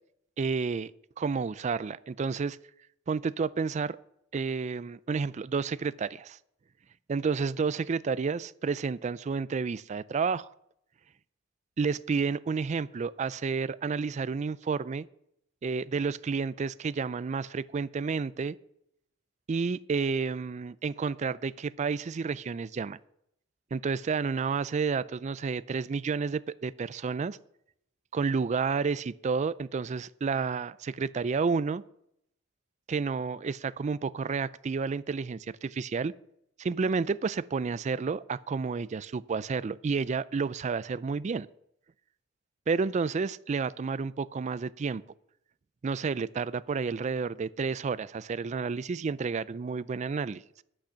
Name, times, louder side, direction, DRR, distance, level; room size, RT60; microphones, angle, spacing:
voice 1, 0.4-0.9 1.2-2.6 3.1-4.0 4.3-6.4 7.1-10.5 11.8-15.1 15.6-18.6 19.5-23.0 23.7-27.4 28.1-31.8 32.9-36.1 36.6-41.5 42.7-45.0 45.8-50.4, right 5 dB, 35° right, 17 dB, 0.3 m, -30 dB
10.5 x 8.7 x 5.8 m, 0.76 s
head